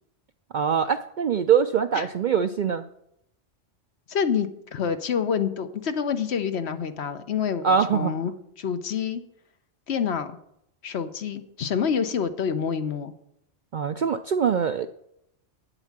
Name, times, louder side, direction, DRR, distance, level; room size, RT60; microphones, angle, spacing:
voice 1, 0.5-2.8 7.6-8.2 13.7-14.9, right 7 dB, 60° right, 10 dB, 0.5 m, -23 dB
voice 2, 4.1-8.3 8.6-9.2 9.9-10.4 10.8-13.1, left 7 dB, 65° left, 10 dB, 1.1 m, -27 dB
9.4 x 8.1 x 7.2 m, 0.77 s
omnidirectional pair, 1.2 m